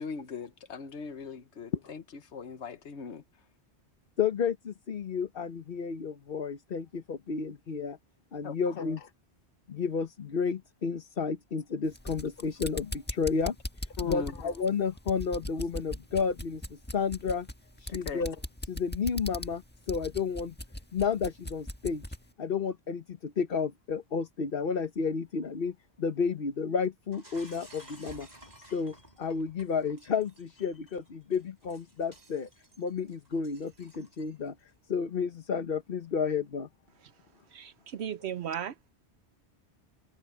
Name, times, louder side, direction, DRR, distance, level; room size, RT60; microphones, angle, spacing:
voice 1, 0.0-2.0 2.3-3.2 8.4-9.0 14.0-14.3 17.9-18.2, left 6 dB, 85° left, 1.4 m, -38 dB
voice 2, 4.2-8.0 8.3-9.1 9.7-13.5 14.0-17.5 17.8-18.4 18.6-19.6 19.9-20.5 20.9-22.0 22.4-28.3 28.7-32.5 32.8-34.5 34.9-36.7, left 5 dB, 55° left, 1.3 m, -31 dB
sound 1, 11.8-22.3, left 1 dB, 10° left, 1.4 m, -40 dB
Shatter, 27.1-34.5, right 1 dB, 40° right, 6.5 m, -54 dB
voice 3, 37.5-38.9, right 9 dB, 75° right, 1.0 m, -36 dB
omnidirectional pair, 1.1 m